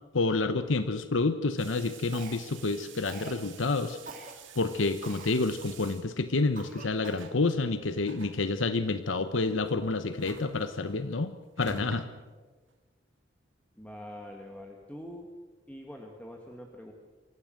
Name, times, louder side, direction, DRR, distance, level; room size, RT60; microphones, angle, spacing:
voice 1, 0.1-4.0 4.6-12.1, left 3 dB, 90° left, 11 dB, 1.0 m, -29 dB
sound 1, 1.6-12.7, right 4 dB, 90° right, 2.1 m, -50 dB
Cough, 2.1-2.6 3.1-3.4 4.1-4.3 5.0-5.4 5.9-6.0 6.6-7.3, right 4 dB, 45° right, 2.7 m, -45 dB
voice 2, 13.8-15.3 15.7-16.9, left 1 dB, 5° left, 1 dB, 1.7 m, -44 dB
25.5 x 14.5 x 7.7 m, 1.3 s
head